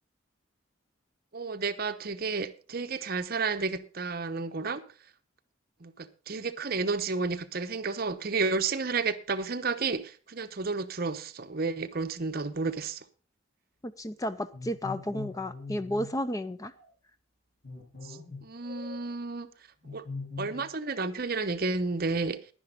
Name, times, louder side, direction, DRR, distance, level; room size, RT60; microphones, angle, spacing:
voice 1, 1.3-4.8 5.8-13.0 18.0-19.5 19.9-20.0 20.4-22.4, right 4 dB, 50° right, 0.9 m, -31 dB
voice 2, 13.8-16.7, left 1 dB, 15° left, 0.5 m, -33 dB
sound 1, 14.5-16.1 16.6-16.9 17.6-19.1 19.8-20.7 21.0-21.9, left 3 dB, 50° left, 6.3 m, -42 dB
11.0 x 10.0 x 5.0 m
head